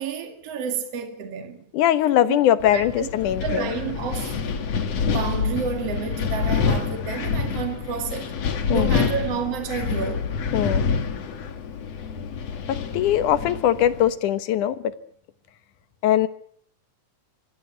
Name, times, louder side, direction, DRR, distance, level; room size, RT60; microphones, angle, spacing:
voice 1, 0.0-1.6 2.3-2.4 2.7-3.1 3.4-4.4 5.1-8.3 8.7-10.3, right 7 dB, 55° right, 3.2 m, -30 dB
voice 2, 1.7-3.7 8.7-9.1 10.5-10.9 12.7-14.9 16.0-16.3, left 11 dB, 90° left, 2.7 m, -21 dB
Wind, 2.6-14.1, left 6 dB, 60° left, 3.0 m, -27 dB
24.5 x 17.0 x 9.9 m
omnidirectional pair, 3.4 m